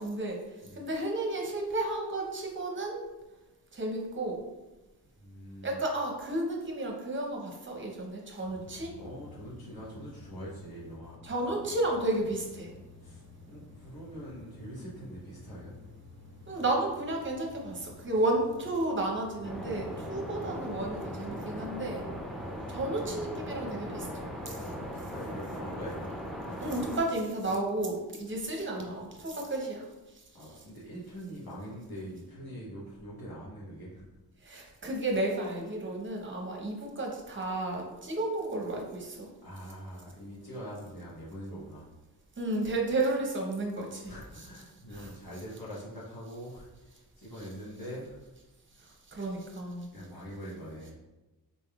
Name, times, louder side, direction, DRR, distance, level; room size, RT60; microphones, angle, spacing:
voice 1, 0.0-3.1 3.7-4.4 5.6-9.0 11.2-12.7 16.5-22.1 22.7-24.6 26.6-30.6 34.4-39.3 42.4-44.1 44.9-45.1 48.8-49.9, right 2 dB, 30° right, 0 dB, 0.7 m, -32 dB
voice 2, 5.2-5.8 9.0-11.2 13.0-13.2 13.5-15.8 16.4-16.6 24.6-26.1 27.5-27.6 30.3-34.0 39.4-41.9 44.0-48.2 49.9-50.9, equal, 65° left, -7 dB, 1.1 m, -43 dB
sound 1, 8.4-25.5, left 3 dB, 20° left, 1.3 m, -52 dB
sound 2, 19.4-27.0, equal, ahead, 0.5 m, -39 dB
4.1 x 3.4 x 2.3 m, 1.1 s
wide cardioid pair, 115°, 40 cm